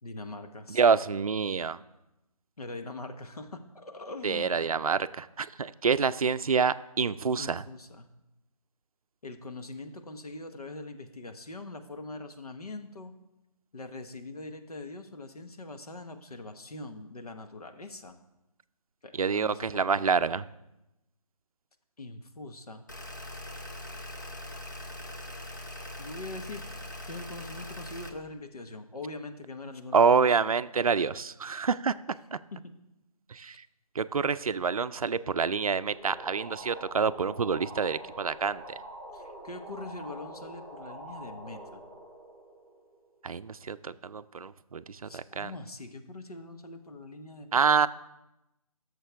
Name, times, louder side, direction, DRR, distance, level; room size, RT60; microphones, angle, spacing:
voice 1, 0.0-0.8 2.6-4.7 7.4-8.1 9.2-13.1 13.7-18.2 19.0-20.4 22.0-22.8 26.0-26.7 27.0-30.4 32.5-32.6 39.1-41.8 45.0-47.8, left 2 dB, 75° left, 7 dB, 1.2 m, -42 dB
voice 2, 0.7-1.8 4.2-7.6 19.2-20.4 29.9-31.9 32.3-32.4 33.3-33.6 34.0-38.8 43.2-45.5 47.5-47.9, right 5 dB, 65° right, 14 dB, 0.4 m, -27 dB
sound 1, 22.9-28.1, left 1 dB, 30° left, 0.8 m, -41 dB
sound 2, 35.8-43.2, right 1 dB, 20° right, 2.2 m, -45 dB
12.5 x 6.7 x 3.4 m, 0.93 s
figure-of-eight pair, 180°, 20 cm